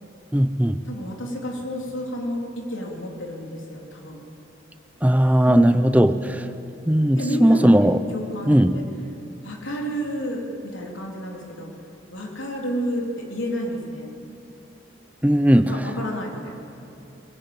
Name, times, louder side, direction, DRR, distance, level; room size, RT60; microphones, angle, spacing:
voice 1, 0.3-0.8 5.0-6.5 6.9-8.0 8.5-8.8 15.2-15.7, equal, 10° right, 10 dB, 0.6 m, -17 dB
voice 2, 0.9-4.2 5.5-5.8 7.1-8.8 9.4-11.7 12.1-14.1 15.7-16.5, equal, 80° left, 0 dB, 3.5 m, -30 dB
21.0 x 16.0 x 8.7 m, 3.0 s
head